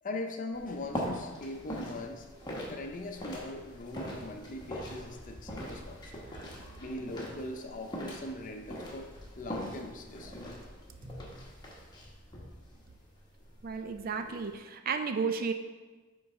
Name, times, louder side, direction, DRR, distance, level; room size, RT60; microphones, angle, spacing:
voice 1, 0.0-2.3 2.7-6.2 6.8-9.1 9.4-10.6, left 2 dB, 40° left, 4 dB, 0.6 m, -40 dB
sound 1, 0.5-14.6, equal, 20° left, 1.0 m, -42 dB
voice 2, 13.6-15.5, right 5 dB, 45° right, 7 dB, 0.4 m, -33 dB
6.9 x 3.9 x 4.2 m, 1.3 s
head